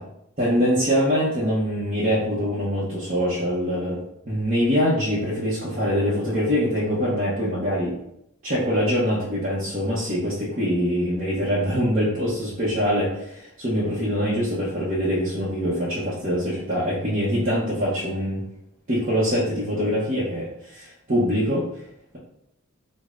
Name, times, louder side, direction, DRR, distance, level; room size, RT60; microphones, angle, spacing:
voice 1, 0.4-8.0 8.4-18.5 18.9-21.7, equal, 35° right, -9 dB, 0.7 m, -24 dB
5.2 x 2.1 x 2.4 m, 0.77 s
head